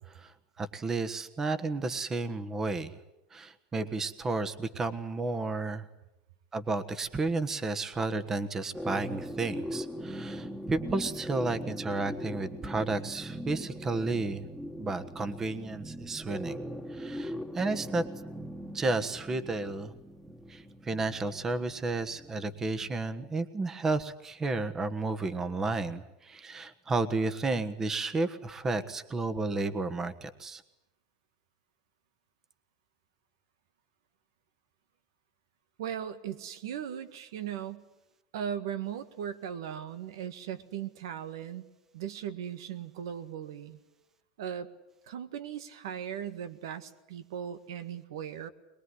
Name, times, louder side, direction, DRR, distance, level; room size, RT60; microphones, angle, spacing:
voice 1, 0.1-3.0 3.3-5.8 6.5-14.4 14.8-16.6 16.9-18.1 18.7-19.9 20.5-30.6, right 3 dB, 20° right, 11 dB, 1.4 m, -32 dB
sound 1, 8.7-23.0, equal, ahead, 1.7 m, -40 dB
voice 2, 35.8-37.8 38.3-41.6 41.9-43.8 44.4-44.7 45.1-48.5, right 9 dB, 90° right, 11 dB, 1.7 m, -38 dB
22.5 x 21.5 x 9.7 m, 0.92 s
supercardioid pair, 135°, 2 cm